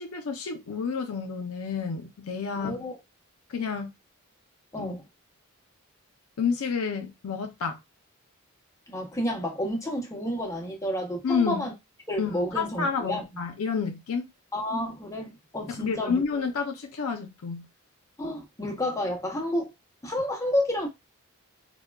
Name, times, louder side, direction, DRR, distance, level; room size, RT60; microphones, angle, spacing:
voice 1, 0.0-2.8 3.5-3.9 4.8-4.9 6.4-7.8 11.2-11.7 12.2-14.3 15.7-17.7, left 5 dB, 80° left, 0.5 m, -30 dB
voice 2, 2.6-3.0 4.7-5.0 8.9-11.7 12.1-13.2 14.5-16.2 18.2-19.7 20.0-20.9, left 1 dB, 15° left, 0.6 m, -30 dB
3.4 x 2.1 x 2.2 m
head